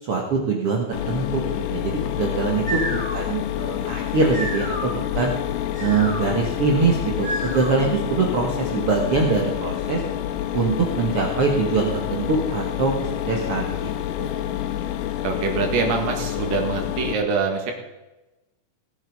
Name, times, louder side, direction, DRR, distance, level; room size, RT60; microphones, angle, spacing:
voice 1, 0.0-5.3 5.8-10.0 10.5-13.9 14.2-14.4, right 4 dB, 50° right, 0 dB, 2.0 m, -23 dB
Mechanisms, 0.9-17.1, left 12 dB, 80° left, 2.5 m, -28 dB
sound 1, 2.4-8.0, right 1 dB, ahead, 4.8 m, -33 dB
voice 2, 15.2-17.7, right 5 dB, 75° right, 3 dB, 3.5 m, -24 dB
18.5 x 7.8 x 5.4 m, 1.0 s
omnidirectional pair, 4.0 m